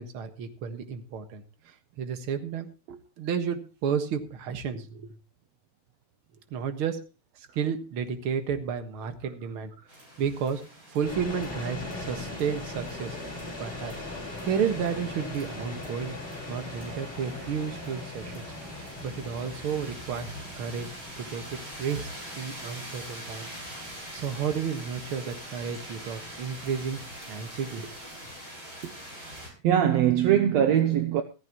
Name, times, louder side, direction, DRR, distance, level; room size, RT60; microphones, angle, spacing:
voice 1, 0.0-2.7 3.2-5.2 6.5-7.0 7.4-9.7 10.2-10.6 10.9-13.2 13.6-13.9 14.4-16.2 16.5-18.5 19.0-23.5 23.8-28.1, right 7 dB, 50° right, 2.1 m, -32 dB
sound 1, 9.9-29.5, equal, 35° right, 7.1 m, -44 dB
sound 2, 11.0-28.0, left 2 dB, 15° left, 4.4 m, -40 dB
voice 2, 28.8-29.3 29.6-31.2, right 10 dB, 70° right, 2.0 m, -23 dB
15.0 x 15.0 x 3.0 m
omnidirectional pair, 3.4 m